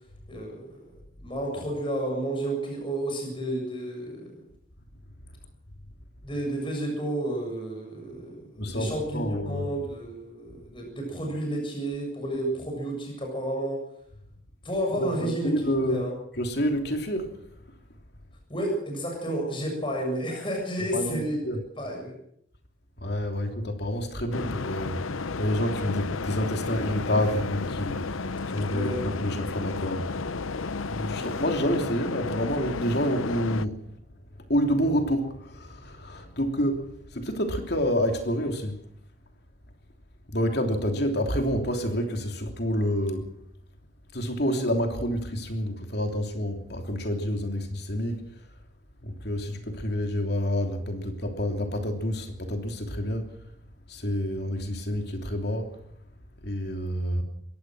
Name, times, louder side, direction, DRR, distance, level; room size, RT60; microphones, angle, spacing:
voice 1, 0.3-4.4 6.2-13.8 14.6-16.1 18.5-21.4 21.8-22.2 28.7-29.1 31.1-31.3, right 1 dB, 25° left, 7.2 m, -31 dB
voice 2, 8.6-9.7 15.0-16.1 16.3-17.3 20.9-21.6 23.0-30.5 30.9-33.8 34.5-38.8 40.3-43.3 44.1-48.3 49.0-53.4 53.9-55.7 56.4-57.2, equal, 55° left, 3.1 m, -28 dB
sound 1, 24.3-33.7, left 4 dB, 90° left, 0.8 m, -33 dB
23.0 x 18.0 x 6.4 m
head